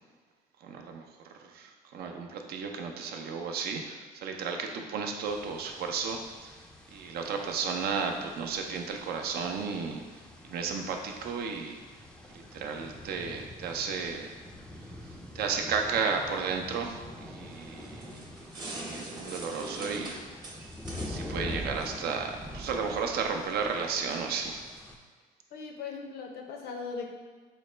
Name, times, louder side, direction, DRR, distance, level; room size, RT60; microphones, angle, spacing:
voice 1, 0.6-1.0 1.5-6.5 6.9-10.0 10.5-11.8 12.3-14.3 15.3-18.2 18.5-20.2 21.0-24.6, right 5 dB, 65° right, 3 dB, 0.5 m, -33 dB
sound 1, 5.3-25.0, left 1 dB, 5° left, 0.4 m, -45 dB
sound 2, 17.5-22.8, right 2 dB, 25° right, 0.7 m, -43 dB
voice 2, 25.5-27.1, left 5 dB, 70° left, 3 dB, 0.6 m, -39 dB
4.7 x 2.1 x 3.2 m, 1.5 s
cardioid pair, 110°, 17 cm